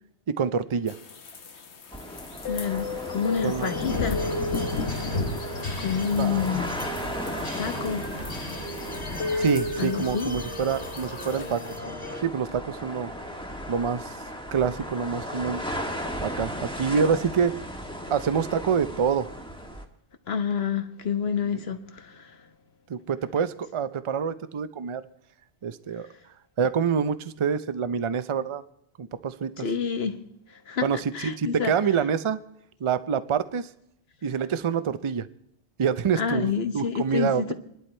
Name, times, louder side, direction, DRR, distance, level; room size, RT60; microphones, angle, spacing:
voice 1, 0.3-1.0 3.4-3.7 6.2-6.5 9.4-11.6 12.2-13.1 13.7-14.2 14.5-15.6 16.2-17.5 18.1-19.3 21.5-21.6 22.9-25.0 25.6-26.1 26.6-28.6 29.0-29.7 30.8-32.4 32.8-33.7 34.2-35.3 35.8-37.5, right 6 dB, 35° right, 0.5 m, -26 dB
sound 1, 0.9-11.8, left 3 dB, 85° left, 1.4 m, -33 dB
sound 2, 1.9-19.8, equal, 5° left, 1.4 m, -37 dB
voice 2, 2.4-4.2 4.6-5.0 5.8-6.7 7.6-8.0 9.8-10.3 20.3-22.5 29.6-30.2 30.5-31.7 36.1-37.5, left 7 dB, 70° left, 1.4 m, -28 dB
sound 3, 3.6-12.2, equal, 50° left, 2.6 m, -38 dB
27.0 x 11.5 x 4.4 m
omnidirectional pair, 1.1 m